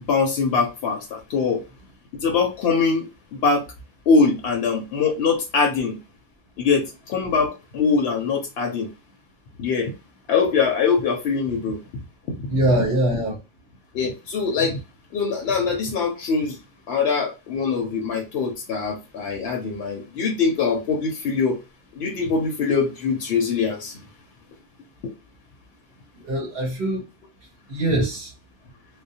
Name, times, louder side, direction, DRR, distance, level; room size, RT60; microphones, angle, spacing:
voice 1, 0.1-1.6 2.2-3.1 3.3-3.7 4.1-6.0 6.6-8.9 9.6-9.9 10.3-11.8 13.9-14.8 15.1-16.6 16.9-21.6 22.0-24.0 25.0-25.1 27.9-28.0, left 5 dB, 80° left, 0.8 m, -22 dB
voice 2, 12.5-13.4 26.2-27.0 27.7-28.3, right 1 dB, 65° right, 1.0 m, -23 dB
2.5 x 2.1 x 2.6 m
omnidirectional pair, 1.0 m